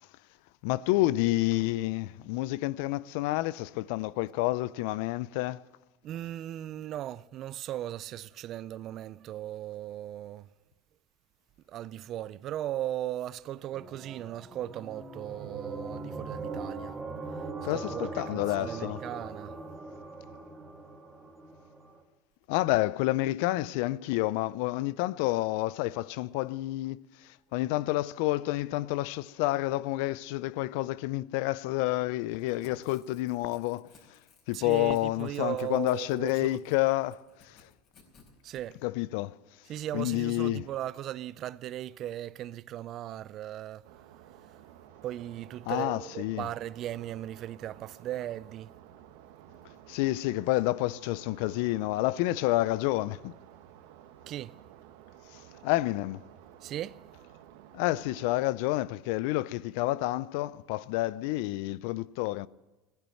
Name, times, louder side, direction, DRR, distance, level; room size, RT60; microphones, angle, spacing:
voice 1, 0.6-5.6 17.6-19.0 22.5-27.0 27.5-33.9 34.5-37.2 37.5-37.6 38.8-39.3 39.9-40.6 45.7-46.5 49.9-53.3 55.6-56.2 57.7-62.5, left 18 dB, 75° left, 0.4 m, -29 dB
voice 2, 6.0-10.5 11.7-17.0 17.4-17.5 17.7-19.6 34.5-36.6 38.4-38.8 39.7-43.9 45.0-48.7 54.3-54.5 56.6-57.0, right 12 dB, 45° right, 0.4 m, -37 dB
sound 1, 13.7-22.0, right 3 dB, 15° right, 1.8 m, -41 dB
Crackle / Tearing, 32.3-38.6, left 4 dB, 40° left, 4.8 m, -60 dB
sound 2, 43.8-58.3, right 11 dB, 80° right, 1.1 m, -53 dB
16.0 x 10.5 x 7.7 m
supercardioid pair, 125°, 0 cm